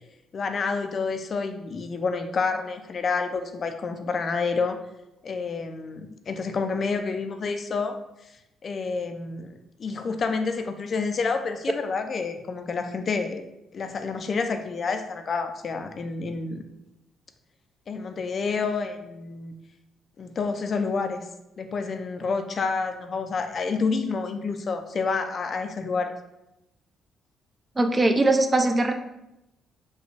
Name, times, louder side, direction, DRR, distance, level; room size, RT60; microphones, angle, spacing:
voice 1, 0.3-4.8 5.2-8.0 8.6-9.5 9.8-13.4 13.7-16.6 17.9-19.5 20.2-21.2 21.6-26.1, left 4 dB, 45° left, 7 dB, 0.4 m, -28 dB
voice 2, 27.8-28.9, right 2 dB, 25° right, 6 dB, 0.4 m, -21 dB
3.9 x 2.2 x 3.2 m, 0.89 s
cardioid pair, 90°, 0 cm